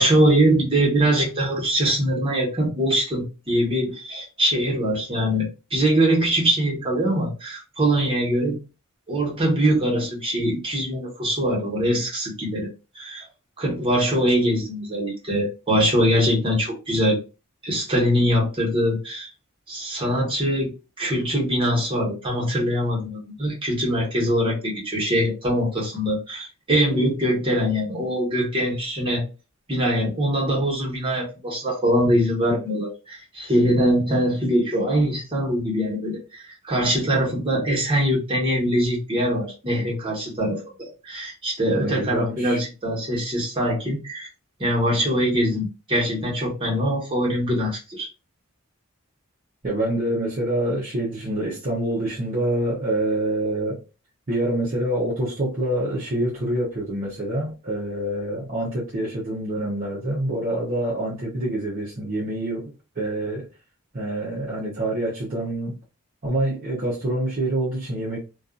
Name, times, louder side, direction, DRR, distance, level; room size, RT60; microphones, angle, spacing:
voice 1, 0.0-8.6 9.1-12.7 12.9-13.2 13.6-17.2 17.6-19.3 19.7-29.3 29.7-44.3 44.6-48.1, equal, 25° right, 1.2 m, -23 dB
voice 2, 41.7-42.6 49.6-53.8 54.3-63.5 63.9-65.8 66.2-68.2, right 1 dB, 40° right, 0.7 m, -26 dB
2.6 x 2.3 x 2.4 m
head